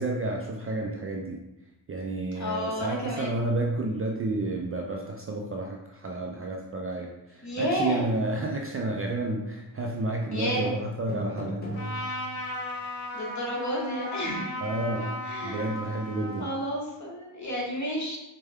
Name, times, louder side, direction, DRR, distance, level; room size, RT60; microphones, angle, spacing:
voice 1, 0.0-1.4 1.9-11.6 14.6-15.1 15.4-16.5, right 2 dB, 30° right, 0 dB, 0.4 m, -30 dB
voice 2, 2.4-3.4 7.4-8.1 8.4-8.5 10.3-10.7 13.1-14.6 15.2-15.7 16.4-18.2, equal, 35° left, -3 dB, 1.4 m, -31 dB
sound 1, 10.5-10.7 11.1-12.7, equal, 20° left, 1.0 m, -37 dB
Trumpet, 11.7-16.7, left 1 dB, 80° left, 1.0 m, -36 dB
4.3 x 2.2 x 3.5 m, 0.95 s
cardioid pair, 75°, 47 cm